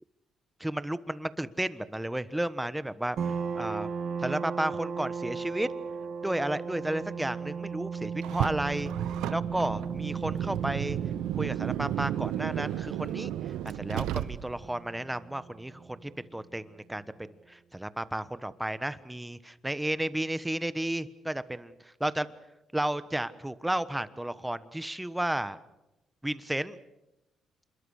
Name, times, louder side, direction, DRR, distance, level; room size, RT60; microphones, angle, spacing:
voice 1, 0.6-3.9 4.2-5.7 6.2-8.9 9.3-11.0 11.4-13.3 13.6-17.0 17.5-22.3 22.7-25.6 26.2-26.8, right 1 dB, 10° right, 14 dB, 1.2 m, -33 dB
sound 1, 3.2-16.4, right 6 dB, 60° right, 2.2 m, -37 dB
Car, 8.2-14.7, right 12 dB, 90° right, 0.8 m, -33 dB
27.0 x 22.0 x 6.5 m, 0.95 s
cardioid pair, 90°, 0 cm